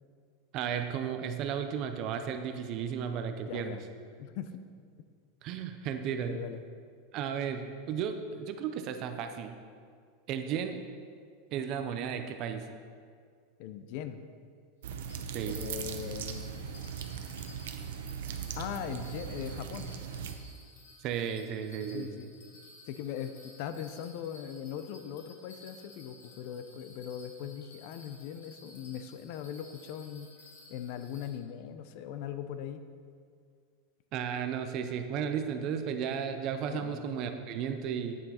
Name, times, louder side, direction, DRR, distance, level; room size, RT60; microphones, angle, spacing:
voice 1, 0.5-3.8 5.4-6.4 7.1-9.6 10.3-10.8 11.5-12.6 15.3-15.6 21.0-22.2 34.1-38.2, right 7 dB, 35° right, 7 dB, 0.5 m, -34 dB
voice 2, 3.5-3.8 4.2-4.5 6.2-6.6 13.6-14.2 15.5-16.5 18.6-19.9 21.9-22.3 22.9-30.3 30.7-32.8 36.7-37.0, left 9 dB, 45° left, 10 dB, 0.5 m, -40 dB
sound 1, 14.8-20.3, right 7 dB, 85° right, 0.7 m, -39 dB
Bell, 14.9-31.3, left 2 dB, 85° left, 1.8 m, -55 dB
9.1 x 6.3 x 4.2 m, 2.1 s
supercardioid pair, 175°, 0 cm